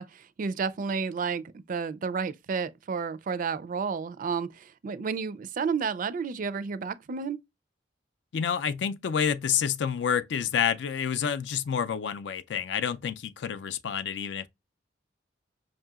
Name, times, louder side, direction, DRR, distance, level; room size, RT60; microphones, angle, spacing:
voice 1, 0.0-7.4, right 5 dB, 45° right, 0.4 m, -31 dB
voice 2, 8.3-14.5, left 7 dB, 70° left, 0.4 m, -28 dB
5.4 x 2.8 x 2.3 m
head